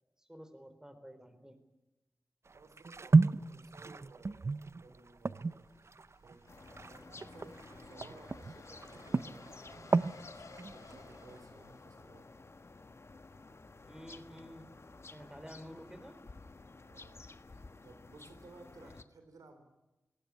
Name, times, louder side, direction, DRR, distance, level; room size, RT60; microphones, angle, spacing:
voice 1, 0.2-1.6 13.9-14.7 15.1-16.2 18.8-18.9, equal, 10° right, 10 dB, 4.2 m, -51 dB
sound 1, 2.5-8.5 8.8-10.2 10.6-11.4, right 3 dB, 50° right, 0.7 m, -32 dB
voice 2, 2.5-5.7 6.2-6.5 6.9-12.3 16.8-17.2 17.8-19.6, right 3 dB, 85° right, 7 dB, 3.9 m, -58 dB
sound 2, 5.7-12.4, left 3 dB, 70° left, 3.9 m, -58 dB
sound 3, 6.5-19.0, left 3 dB, 50° left, 1.4 m, -53 dB
20.5 x 18.5 x 9.8 m, 1.0 s
cardioid pair, 45°, 6 cm